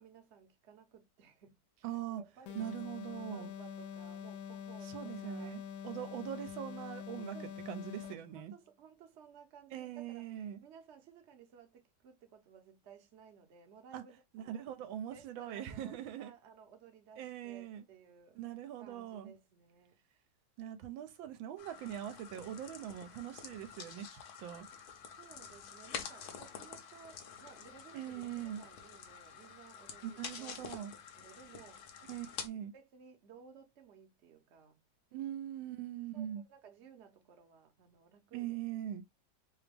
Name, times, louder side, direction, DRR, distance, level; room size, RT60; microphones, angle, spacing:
voice 1, 0.0-1.6 1.9-2.7 3.3-6.5 7.2-7.6 8.0-10.2 10.6-14.7 15.1-18.4 18.8-20.0 25.2-32.1 32.7-34.8 35.2-35.5 36.1-38.6, right 7 dB, 50° right, 0.9 m, -58 dB
voice 2, 1.8-2.2 2.5-3.5 4.8-7.3 7.7-8.5 9.7-10.6 13.9-14.0 14.3-16.3 17.2-17.8 18.4-19.3 20.6-24.7 27.9-28.6 30.0-30.9 32.1-32.7 35.1-36.4 38.3-39.0, right 11 dB, 85° right, 1.4 m, -42 dB
sound 1, 2.5-8.4, left 8 dB, 80° left, 1.3 m, -45 dB
sound 2, 21.6-32.5, left 7 dB, 65° left, 1.1 m, -48 dB
3.4 x 2.9 x 3.3 m
omnidirectional pair, 2.1 m